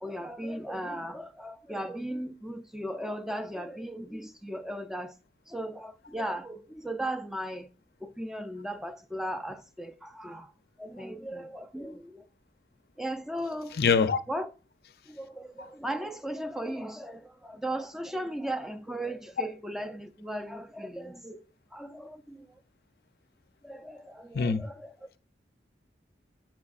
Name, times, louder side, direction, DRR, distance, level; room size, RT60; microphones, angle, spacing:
voice 1, 0.0-5.1 5.5-7.7 8.0-10.5 10.8-12.2 13.0-13.7 14.3-14.5 15.1-21.4 21.7-22.5 23.6-24.9, right 1 dB, ahead, 0.4 m, -37 dB
voice 2, 13.7-14.2 15.6-15.7 24.3-24.7, left 5 dB, 55° left, 0.5 m, -24 dB
8.3 x 6.1 x 2.4 m
head